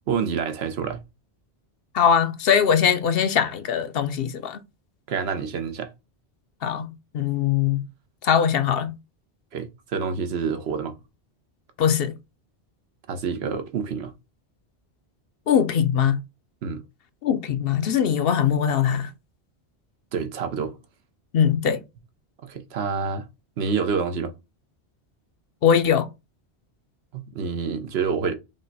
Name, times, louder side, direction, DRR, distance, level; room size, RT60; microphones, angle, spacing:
voice 1, 0.1-1.0 5.1-5.9 9.5-11.0 13.1-14.1 16.6-16.8 20.1-20.8 22.4-23.3 23.6-24.3 27.1-28.3, right 6 dB, 70° right, 0.9 m, -27 dB
voice 2, 1.9-4.6 6.6-7.8 8.2-8.9 11.8-12.1 15.5-16.2 17.2-19.1 21.3-21.8 25.6-26.1, left 8 dB, 65° left, 0.7 m, -21 dB
5.2 x 2.2 x 3.9 m
omnidirectional pair, 1.1 m